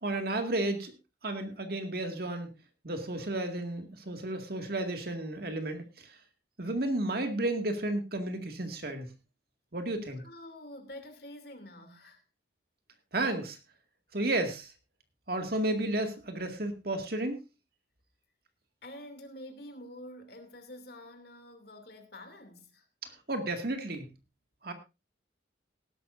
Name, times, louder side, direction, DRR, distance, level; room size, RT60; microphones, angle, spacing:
voice 1, 0.0-0.9 1.2-2.5 2.8-6.2 6.6-9.1 9.7-10.2 13.1-13.6 14.1-14.7 15.3-17.4 23.0-24.1 24.6-24.7, right 1 dB, 55° right, 2.1 m, -32 dB
voice 2, 10.1-12.2 18.8-22.8, left 1 dB, 55° left, 2.8 m, -47 dB
18.5 x 12.0 x 2.6 m
head